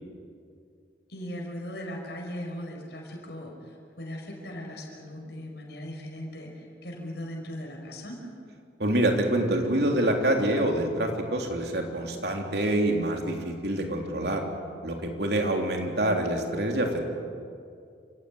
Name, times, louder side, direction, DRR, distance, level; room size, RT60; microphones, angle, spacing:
voice 1, 1.1-8.2, equal, 70° left, 0 dB, 5.3 m, -38 dB
voice 2, 8.8-14.4 14.8-17.1, right 1 dB, 70° right, 2 dB, 3.5 m, -26 dB
27.5 x 16.5 x 9.6 m, 2.3 s
head